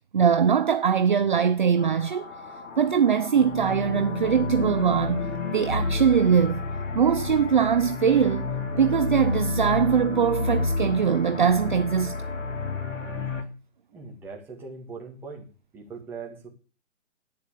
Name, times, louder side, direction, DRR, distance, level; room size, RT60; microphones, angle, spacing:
voice 1, 0.1-2.2 2.8-5.3 5.5-6.7 6.9-12.2, right 7 dB, 40° right, 0.7 m, -22 dB
sound 1, 1.8-13.4, left 3 dB, 75° left, 3.1 m, -30 dB
voice 2, 13.9-15.5 15.7-16.5, right 4 dB, 5° right, 2.0 m, -40 dB
11.5 x 9.2 x 8.2 m
hypercardioid pair, 170°, 38 cm